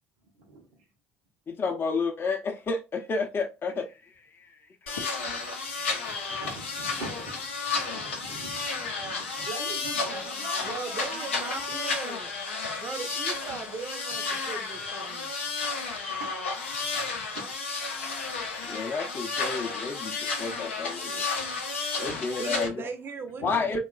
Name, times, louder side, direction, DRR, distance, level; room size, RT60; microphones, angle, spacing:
voice 1, 0.5-0.8 5.6-6.0 6.3-11.7 14.3-14.4 15.4-15.6 15.8-16.4 17.3-17.4 23.4-23.6, right 2 dB, 75° right, 0.6 m, -43 dB
voice 2, 1.5-4.5 4.8-5.3 5.6-5.7 17.9-18.1 18.7-21.2 22.0-22.9 23.4-23.8, left 4 dB, 35° left, 0.5 m, -31 dB
sound 1, 4.9-22.7, left 4 dB, 90° left, 0.5 m, -32 dB
voice 3, 10.7-12.3 12.8-15.3 21.9-22.0 22.4-23.8, right 5 dB, 40° right, 0.5 m, -38 dB
2.9 x 2.3 x 2.2 m
hypercardioid pair, 60°, 6 cm